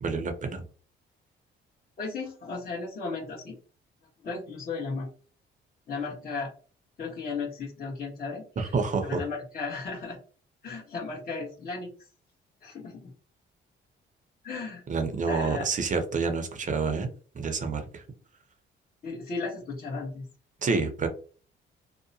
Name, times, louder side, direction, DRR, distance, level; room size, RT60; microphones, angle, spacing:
voice 1, 0.0-0.6 8.6-9.2 14.9-18.0 20.6-21.1, right 4 dB, 40° right, 6 dB, 0.7 m, -28 dB
voice 2, 2.0-3.5 4.2-5.1 5.9-6.5 7.0-8.7 9.0-10.2 10.6-11.9 12.6-13.1 14.4-14.8 15.2-15.7 19.0-20.2, left 4 dB, 45° left, -7 dB, 1.1 m, -35 dB
2.8 x 2.1 x 2.7 m, 0.40 s
cardioid pair, 90°, 20 cm